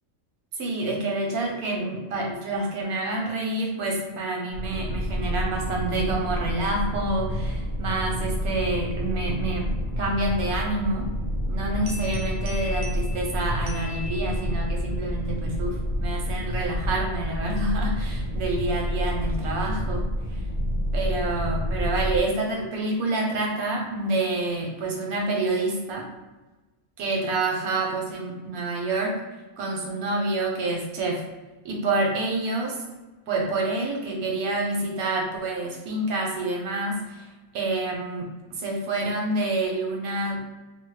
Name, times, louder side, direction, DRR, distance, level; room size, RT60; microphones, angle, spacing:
voice 1, 0.6-11.1 11.5-20.1 20.9-26.1 27.0-29.2 29.6-31.2 31.6-32.8 33.3-37.3 37.5-38.3 38.6-40.4, right 2 dB, 90° right, 0 dB, 1.2 m, -28 dB
sound 1, 4.5-22.2, equal, 30° right, 0.3 m, -29 dB
sound 2, 11.9-14.8, left 2 dB, 65° right, 0.8 m, -41 dB
3.4 x 2.0 x 3.2 m, 1.1 s
omnidirectional pair, 1.5 m